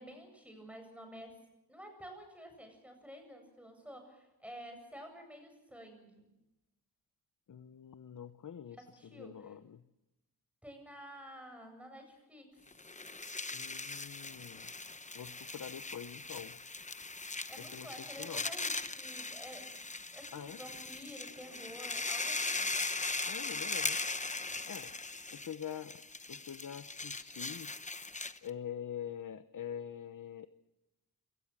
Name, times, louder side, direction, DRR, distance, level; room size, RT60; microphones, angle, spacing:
voice 1, 0.0-1.4 1.7-6.3 8.7-9.6 10.6-12.5 17.5-19.8 20.1-22.8, equal, 5° right, 5 dB, 8.0 m, -50 dB
voice 2, 7.5-8.8 9.0-9.8 13.5-14.7 15.1-16.6 17.6-18.4 20.3-20.6 23.2-24.0 24.6-24.9 25.3-26.0 26.3-27.7 28.4-30.5, left 9 dB, 55° left, 12 dB, 1.0 m, -45 dB
sound 1, 12.7-28.5, left 3 dB, 20° left, 0.9 m, -39 dB
28.0 x 18.0 x 7.6 m, 0.95 s
wide cardioid pair, 105°, 38 cm